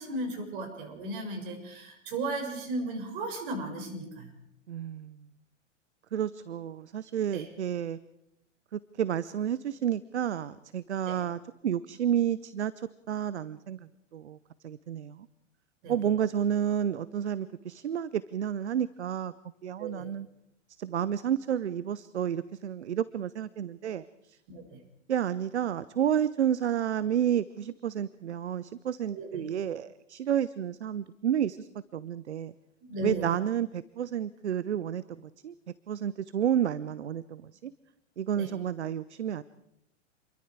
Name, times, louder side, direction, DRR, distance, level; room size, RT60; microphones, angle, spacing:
voice 1, 0.0-4.3 7.3-7.5 11.0-11.2 15.8-15.9 19.8-20.1 24.5-24.8 29.1-29.5 32.8-33.2 38.4-38.5, right 2 dB, 45° right, 3 dB, 7.1 m, -36 dB
voice 2, 4.7-5.3 6.1-8.0 8.7-14.4 14.6-15.3 15.9-19.3 19.6-20.3 20.8-24.4 25.1-32.5 33.0-35.5 35.9-37.7 38.2-39.4, right 9 dB, 65° right, 17 dB, 0.8 m, -31 dB
28.0 x 22.5 x 4.9 m, 0.80 s
figure-of-eight pair, 100°, 36 cm